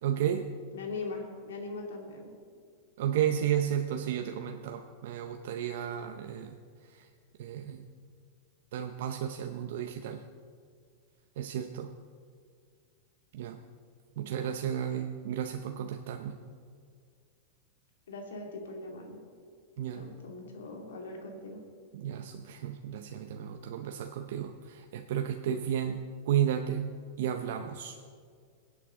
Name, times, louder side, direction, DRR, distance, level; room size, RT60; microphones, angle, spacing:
voice 1, 0.0-0.5 3.0-6.6 6.9-7.1 7.4-7.8 8.7-10.2 11.4-11.9 13.3-13.6 14.2-16.4 19.8-20.0 21.9-26.0 26.3-26.9 27.2-28.0, right 9 dB, 70° right, 5 dB, 0.6 m, -32 dB
voice 2, 0.7-2.3 18.1-19.2 19.9-21.6, left 3 dB, 85° left, 1 dB, 2.4 m, -40 dB
22.0 x 8.6 x 3.7 m, 2.1 s
hypercardioid pair, 110°, 0 cm